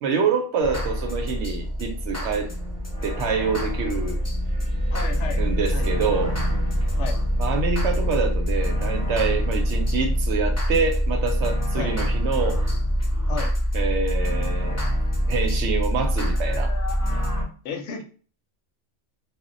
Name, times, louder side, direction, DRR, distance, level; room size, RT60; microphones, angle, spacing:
voice 1, 0.0-2.5 3.0-4.2 5.4-6.4 7.4-12.6 13.7-14.8 15.3-16.7, right 5 dB, 70° right, 0.8 m, -26 dB
sound 1, 0.6-17.4, equal, 25° left, 0.4 m, -25 dB
sound 2, 1.6-11.8, left 1 dB, 45° right, 0.4 m, -37 dB
voice 2, 4.9-5.4 5.7-5.9 7.0-7.2 11.7-11.9 13.3-13.5 17.6-18.0, left 5 dB, 70° left, 0.8 m, -32 dB
2.2 x 2.1 x 3.7 m
omnidirectional pair, 1.3 m